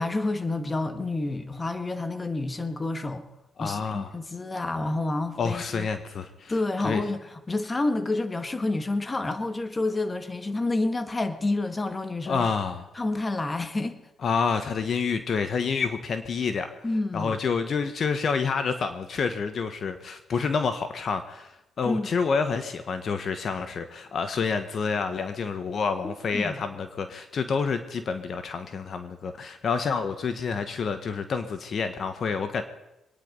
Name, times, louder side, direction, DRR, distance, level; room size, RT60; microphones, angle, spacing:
voice 1, 0.0-3.3 3.6-5.9 6.5-12.5 12.9-14.0 16.8-17.3 21.8-22.1 26.3-26.6, left 2 dB, 25° left, 9 dB, 1.5 m, -29 dB
voice 2, 3.6-4.1 5.4-6.5 6.8-7.0 12.3-12.9 14.2-16.7 17.1-21.5 21.8-32.6, left 5 dB, 50° left, 9 dB, 1.2 m, -28 dB
24.0 x 10.0 x 5.4 m, 0.92 s
cardioid pair, 90°, 0 cm